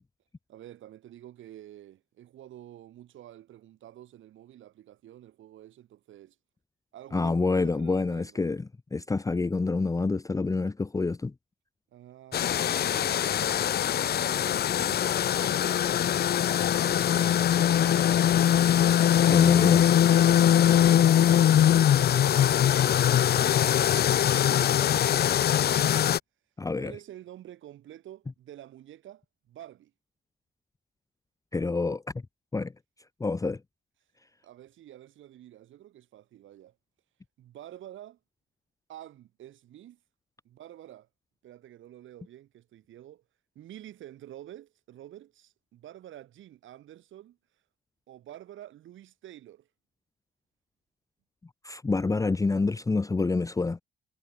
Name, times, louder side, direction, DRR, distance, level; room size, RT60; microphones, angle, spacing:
voice 1, 0.5-6.4 6.9-8.4 11.9-18.2 20.6-26.1 26.8-29.9 34.4-36.8 37.4-38.2 38.9-40.0 40.4-41.1 41.4-43.2 43.5-47.4 48.1-49.7, right 12 dB, 75° right, 4.8 m, -49 dB
voice 2, 7.1-11.3 19.3-20.0 26.6-26.9 31.5-32.0 32.5-32.7 33.2-33.6 51.6-53.8, left 3 dB, 15° left, 0.7 m, -27 dB
sound 1, 12.3-26.2, left 10 dB, 55° left, 0.7 m, -22 dB
cardioid pair, 90°, 20 cm